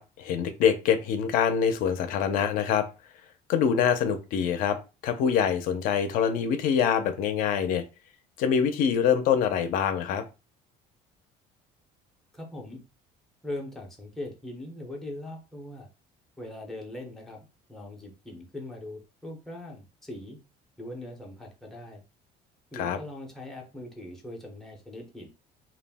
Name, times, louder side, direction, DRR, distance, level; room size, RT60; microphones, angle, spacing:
voice 1, 0.0-2.9 3.5-4.8 5.0-7.8 8.4-10.2 22.7-23.0, left 7 dB, 55° left, 9 dB, 0.4 m, -25 dB
voice 2, 12.3-12.8 13.4-15.9 16.4-20.4 20.8-22.0 22.7-25.3, left 1 dB, ahead, -1 dB, 0.5 m, -40 dB
2.3 x 2.0 x 3.3 m, 0.30 s
cardioid pair, 175°, 17 cm